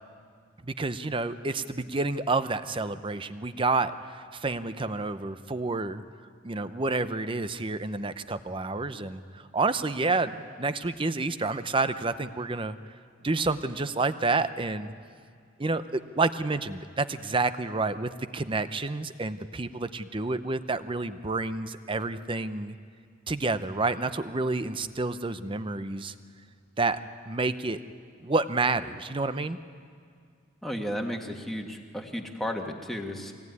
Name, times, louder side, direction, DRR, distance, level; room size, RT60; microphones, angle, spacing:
voice 1, 0.6-6.0 6.4-12.8 13.2-14.9 15.6-22.8 23.3-26.1 26.8-27.0 27.3-27.8 28.2-29.6, right 3 dB, 25° right, 12 dB, 0.6 m, -29 dB
voice 2, 30.6-33.3, equal, ahead, 1 dB, 1.6 m, -33 dB
23.5 x 17.5 x 9.6 m, 2.1 s
head